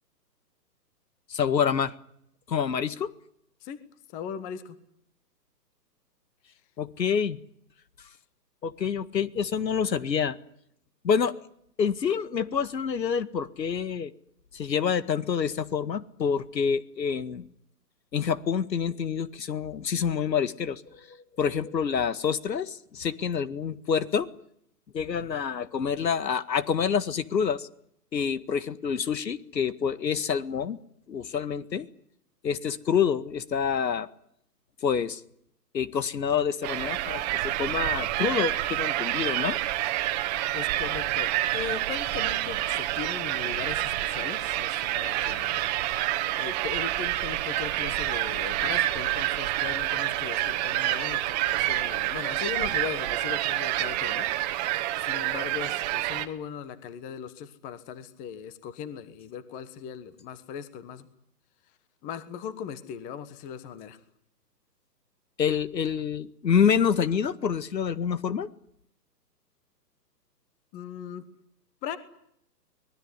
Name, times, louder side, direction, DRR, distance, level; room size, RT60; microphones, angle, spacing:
voice 1, 1.3-1.9 2.5-3.1 6.8-7.4 8.6-10.4 11.0-11.3 11.8-14.1 14.5-17.4 18.1-24.3 24.9-27.7 28.1-30.8 31.1-31.9 32.4-34.1 34.8-35.2 35.7-39.6 65.4-68.5, left 7 dB, 80° left, 15 dB, 2.0 m, -27 dB
voice 2, 4.1-4.8 40.5-46.0 46.3-61.1 62.0-64.0 70.7-71.2 71.8-72.0, left 8 dB, 15° left, 14 dB, 1.3 m, -38 dB
sound 1, 36.6-56.3, right 15 dB, 25° right, 1.6 m, -28 dB
24.5 x 20.5 x 9.8 m, 0.71 s
hypercardioid pair, 150°, 50 cm